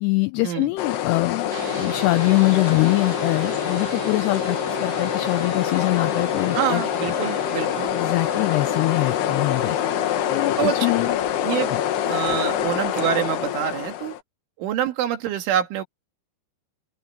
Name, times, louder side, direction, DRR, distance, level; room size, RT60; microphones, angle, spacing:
voice 1, 0.0-7.1 7.9-9.8 10.3-11.2 11.7-11.8, left 22 dB, 85° left, 2.4 m, -23 dB
sound 1, 0.8-14.2, left 11 dB, 70° left, 3.2 m, -25 dB
sound 2, 1.5-13.7, right 9 dB, 60° right, 3.1 m, -36 dB
voice 2, 6.5-7.9 10.6-10.9 11.4-11.8 12.1-14.2 14.6-15.8, right 9 dB, 85° right, 4.7 m, -26 dB
open air
omnidirectional pair, 5.4 m